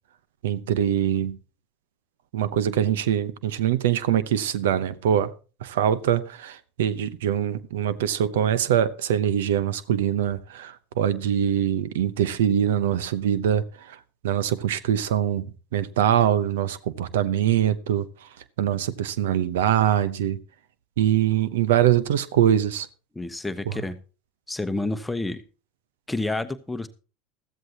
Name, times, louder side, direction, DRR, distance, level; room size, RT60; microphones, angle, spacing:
voice 1, 0.4-1.4 2.3-5.3 5.6-14.0 14.2-15.5 15.7-18.1 18.6-20.4 21.0-22.9, right 10 dB, 80° right, 0.8 m, -23 dB
voice 2, 23.1-24.0 24.5-25.4 26.1-26.9, left 2 dB, 10° left, 0.9 m, -29 dB
14.0 x 14.0 x 2.9 m
hypercardioid pair, 95°, 0 cm